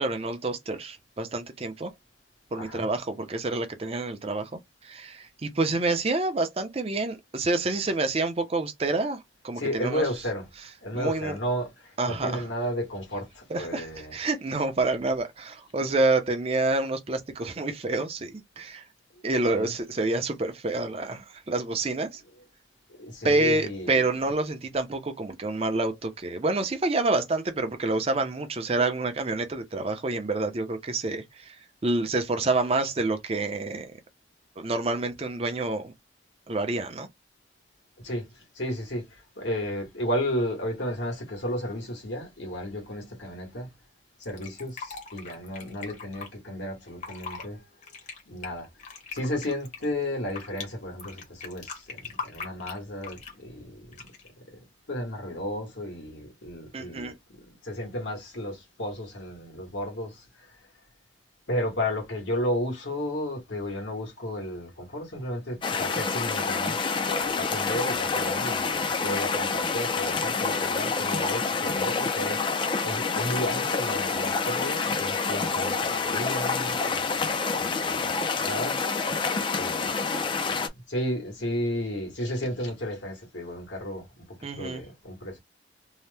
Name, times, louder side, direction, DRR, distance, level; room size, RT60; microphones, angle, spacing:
voice 1, 0.0-1.9 2.5-4.5 4.8-10.0 10.9-11.3 12.0-12.4 13.5-13.9 14.1-18.8 19.2-22.2 23.2-31.5 31.8-33.9 34.6-35.9 36.5-37.1 56.7-57.1 84.4-84.8, right 2 dB, 35° right, 0.5 m, -28 dB
voice 2, 9.6-10.5 10.8-14.2 19.5-19.7 23.0-24.1 38.0-43.7 44.2-47.6 48.2-48.7 49.1-54.0 54.5-60.6 61.5-72.6 72.8-79.9 80.4-85.4, equal, 75° left, 1.2 m, -33 dB
Fill (with liquid), 44.2-46.3 46.9-47.5 47.8-50.7 51.0-53.4 53.9-54.3, left 5 dB, 40° left, 0.9 m, -40 dB
sound 1, 65.6-80.7, left 4 dB, 25° left, 0.3 m, -27 dB
2.8 x 2.1 x 3.3 m
head